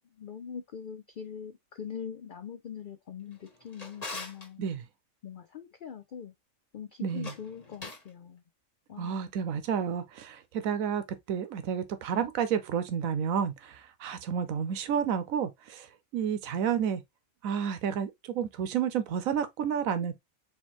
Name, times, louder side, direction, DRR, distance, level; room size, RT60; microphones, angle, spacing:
voice 1, 0.2-4.6 5.2-6.3 6.7-8.4 8.9-9.3, left 7 dB, 80° left, 0.4 m, -42 dB
Drawer open or close, 3.3-4.5 7.1-8.1, left 3 dB, 30° left, 1.3 m, -43 dB
voice 2, 7.0-7.3 9.0-15.9 16.1-17.0 17.4-20.2, right 8 dB, 85° right, 1.1 m, -30 dB
4.3 x 3.3 x 2.9 m
omnidirectional pair, 1.4 m